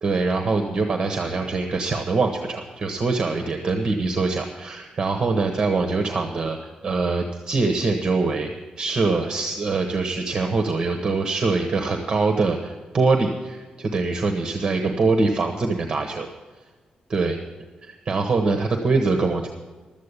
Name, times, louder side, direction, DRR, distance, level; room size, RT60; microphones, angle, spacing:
voice 1, 0.0-8.5 8.8-16.3 17.1-17.4 17.8-19.5, right 3 dB, 30° right, 4 dB, 1.0 m, -23 dB
12.5 x 8.5 x 8.2 m, 1.4 s
wide cardioid pair, 180°, 3 cm